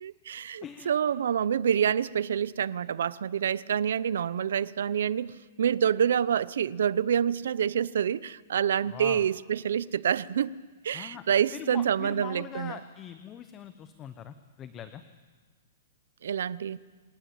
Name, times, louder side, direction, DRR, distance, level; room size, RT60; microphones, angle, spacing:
voice 1, 0.0-10.5 10.8-12.8 16.2-16.8, right 8 dB, 70° right, 0.7 m, -27 dB
voice 2, 0.6-0.9 8.9-9.2 10.9-11.2 11.5-15.0, left 9 dB, 15° left, 0.8 m, -42 dB
26.0 x 18.5 x 9.0 m
hypercardioid pair, 175°, 0 cm